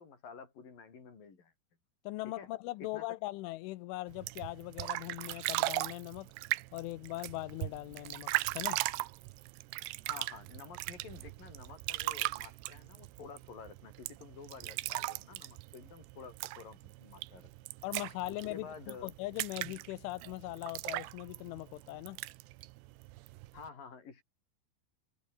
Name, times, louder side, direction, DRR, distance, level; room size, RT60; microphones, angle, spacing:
voice 1, 0.0-1.5 2.2-2.5 2.8-3.1 10.0-17.5 18.3-19.1 23.5-24.2, left 6 dB, 50° left, 6.6 m, -50 dB
voice 2, 2.0-6.3 6.7-8.8 17.8-22.2, left 19 dB, 90° left, 3.4 m, -40 dB
sound 1, 4.1-23.7, right 20 dB, 80° right, 2.6 m, -39 dB
omnidirectional pair, 5.4 m